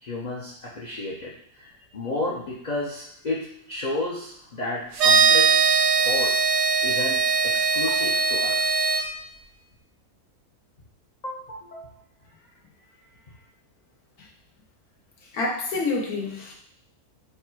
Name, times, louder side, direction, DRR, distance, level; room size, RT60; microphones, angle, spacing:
voice 1, 0.0-6.3 6.8-8.8 11.2-12.0 12.4-12.5 13.3-13.4, left 2 dB, 70° left, -4 dB, 0.4 m, -33 dB
sound 1, 5.0-9.0, right 5 dB, 75° right, 0.5 m, -20 dB
voice 2, 15.3-16.5, left 3 dB, 90° left, -2 dB, 1.2 m, -27 dB
3.3 x 2.2 x 4.4 m, 0.71 s
omnidirectional pair, 1.6 m